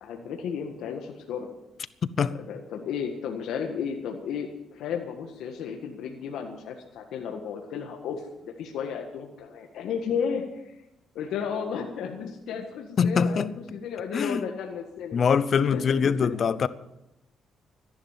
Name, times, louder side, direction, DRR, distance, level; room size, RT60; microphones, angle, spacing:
voice 1, 0.0-1.5 2.3-10.8 11.2-15.2 15.7-16.3, left 7 dB, 80° left, 1.6 m, -33 dB
voice 2, 13.0-13.5 14.1-14.4 15.1-16.7, left 6 dB, 50° left, 0.7 m, -23 dB
14.5 x 11.0 x 7.4 m
cardioid pair, 90°, 0 cm